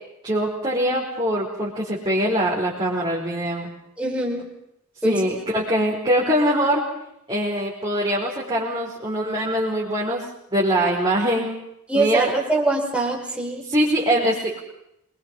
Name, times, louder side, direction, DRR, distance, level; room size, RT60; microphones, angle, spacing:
voice 1, 0.2-3.7 5.0-6.8 7.3-10.2 10.5-11.6 11.9-12.3 13.7-14.6, equal, 25° right, -6 dB, 5.1 m, -23 dB
voice 2, 4.0-4.5 5.0-5.3 11.9-13.6, right 2 dB, 5° right, -1 dB, 5.2 m, -23 dB
27.0 x 22.5 x 5.6 m, 0.79 s
head